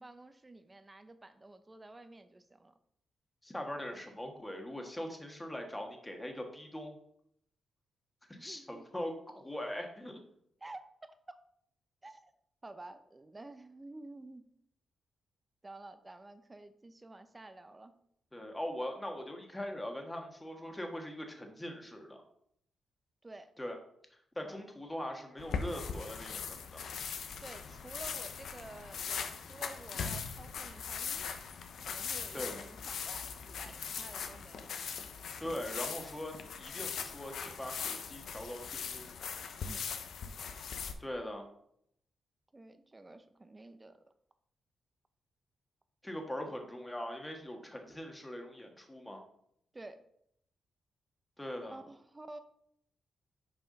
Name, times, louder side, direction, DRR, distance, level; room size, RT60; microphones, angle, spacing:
voice 1, 0.0-2.7 3.9-4.0 8.3-8.9 10.6-11.4 12.0-12.3 12.6-14.5 15.6-17.9 23.2-23.5 24.4-24.6 27.4-31.4 31.9-34.8 35.4-35.6 39.6-39.9 42.5-44.0 49.7-50.1 51.7-52.4, right 2 dB, 20° right, 10 dB, 0.7 m, -51 dB
voice 2, 3.4-6.9 8.3-10.2 18.3-22.2 23.6-23.8 24.3-26.8 32.3-32.6 35.4-39.1 41.0-41.5 46.0-49.2 51.4-51.8, left 1 dB, 10° left, 3 dB, 1.5 m, -41 dB
sound 1, 25.4-40.9, left 6 dB, 75° left, 0.8 m, -40 dB
6.6 x 4.8 x 5.2 m, 0.71 s
cardioid pair, 85°, 0 cm